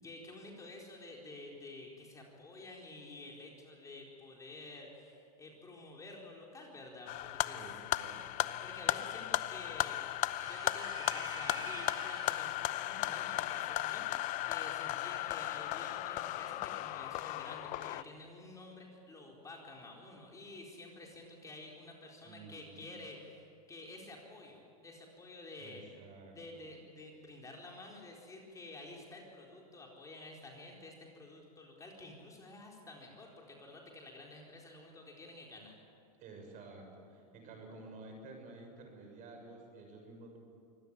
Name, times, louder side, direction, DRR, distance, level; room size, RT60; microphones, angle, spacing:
voice 1, 0.0-7.6 8.6-10.0 10.5-25.8 26.3-35.8, left 2 dB, 15° left, -1 dB, 4.3 m, -50 dB
sound 1, 7.1-18.0, left 15 dB, 40° left, 0.7 m, -36 dB
voice 2, 7.5-8.5 22.2-22.9 25.6-26.7 36.2-40.4, right 3 dB, 40° right, 3 dB, 6.9 m, -52 dB
sound 2, 10.4-12.6, right 5 dB, 20° right, 2.3 m, -48 dB
25.0 x 16.5 x 9.9 m, 2.3 s
supercardioid pair, 125°, 19 cm